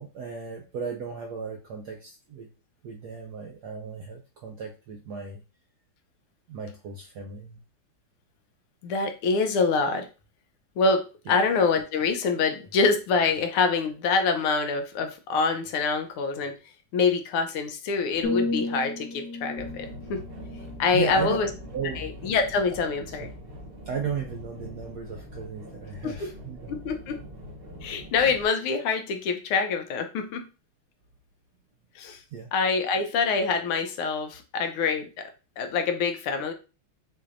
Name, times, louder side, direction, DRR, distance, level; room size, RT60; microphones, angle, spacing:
voice 1, 0.0-2.5 2.8-5.4 6.5-7.6 11.3-11.4 20.9-21.4 21.7-22.0 22.8-23.2 23.8-26.8 32.3-32.5, right 6 dB, 75° right, 2 dB, 0.9 m, -35 dB
voice 2, 8.8-10.1 10.8-16.5 16.9-20.2 20.8-21.5 22.0-23.3 26.0-26.3 26.7-27.2 27.8-30.4 32.0-32.2 32.5-35.1 35.6-36.5, left 4 dB, 80° left, 6 dB, 1.6 m, -25 dB
sound 1, 18.2-22.1 22.6-22.9, left 2 dB, 60° left, 1.1 m, -34 dB
sound 2, 19.6-28.4, equal, 60° right, 0.6 m, -43 dB
6.2 x 2.7 x 2.5 m, 0.31 s
omnidirectional pair, 2.4 m